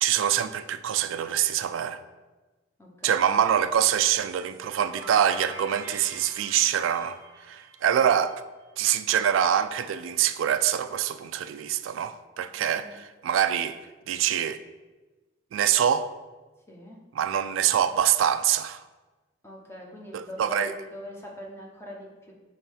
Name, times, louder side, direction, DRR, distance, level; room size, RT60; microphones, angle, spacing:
voice 1, 0.0-2.0 3.0-7.2 7.5-8.4 8.8-13.8 14.1-14.6 15.5-16.1 17.1-18.8 20.1-20.7, right 9 dB, 85° right, 0.3 m, -25 dB
voice 2, 2.8-3.2 12.6-13.0 16.7-17.0 19.4-22.3, left 1 dB, 10° left, 0.9 m, -42 dB
sound 1, 4.2-8.9, right 2 dB, 15° right, 1.0 m, -46 dB
5.5 x 3.1 x 5.4 m
head